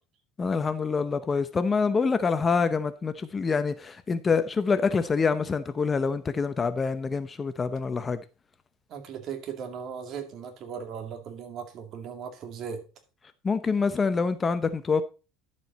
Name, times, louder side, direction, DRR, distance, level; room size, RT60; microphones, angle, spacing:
voice 1, 0.4-8.2 13.4-15.0, left 5 dB, 20° left, 0.6 m, -26 dB
voice 2, 8.9-12.8, right 7 dB, 45° right, 2.3 m, -37 dB
11.5 x 7.5 x 4.1 m
cardioid pair, 135°, 0 cm